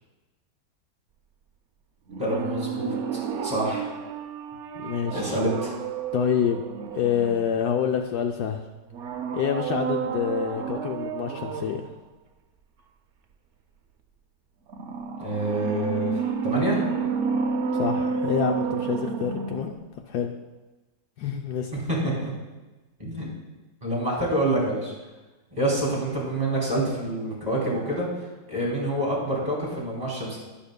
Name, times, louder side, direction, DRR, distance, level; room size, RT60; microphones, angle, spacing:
sound 1, 2.1-7.8 8.9-11.9 14.7-19.9 20.2-20.3, right 6 dB, 70° right, 0.6 m, -30 dB
voice 1, 2.2-2.9 3.4-3.9 5.1-5.7 15.2-16.8 22.0-22.3 23.0-23.3 23.8-24.9 25.5-28.1 28.5-30.4, right 1 dB, 25° right, -4 dB, 3.1 m, -27 dB
voice 2, 4.7-5.4 6.1-6.6 6.9-8.6 9.3-11.8 17.7-19.8 20.1-20.3 21.2-21.8, left 8 dB, 75° left, 4 dB, 1.1 m, -27 dB
11.5 x 10.5 x 2.2 m, 1.1 s
omnidirectional pair, 1.9 m